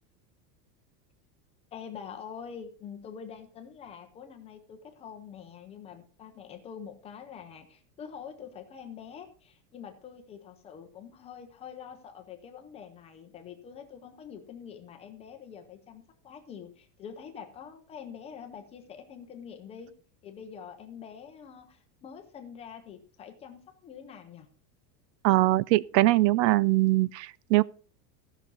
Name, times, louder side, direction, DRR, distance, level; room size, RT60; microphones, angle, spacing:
voice 1, 1.7-19.9 20.2-24.5, left 7 dB, 15° left, 0.5 m, -45 dB
voice 2, 25.2-27.6, right 17 dB, 85° right, 0.7 m, -22 dB
14.5 x 5.9 x 5.4 m
supercardioid pair, 180°, 49 cm